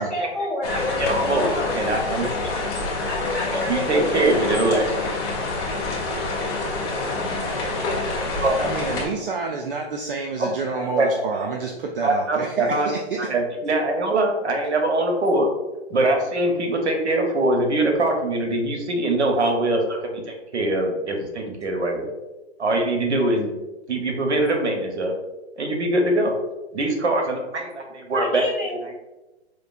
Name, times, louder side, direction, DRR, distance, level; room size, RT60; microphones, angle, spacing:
voice 1, 0.0-1.9 3.1-4.3 28.1-28.8, left 1 dB, ahead, -10 dB, 1.2 m, -28 dB
sound 1, 0.6-9.1, left 2 dB, 25° left, 0.5 m, -27 dB
voice 2, 0.7-2.6 3.5-5.0 7.7-8.6 10.4-11.5 12.0-12.9 13.2-15.5 15.9-22.1 22.6-23.5 23.9-25.1 25.6-26.4 26.7-28.5 28.8-29.0, right 2 dB, 85° right, 2 dB, 0.8 m, -23 dB
voice 3, 7.2-8.0 8.4-13.2, right 4 dB, 55° right, 1 dB, 0.4 m, -29 dB
4.5 x 2.2 x 2.5 m, 1.1 s
hypercardioid pair, 130°, 33 cm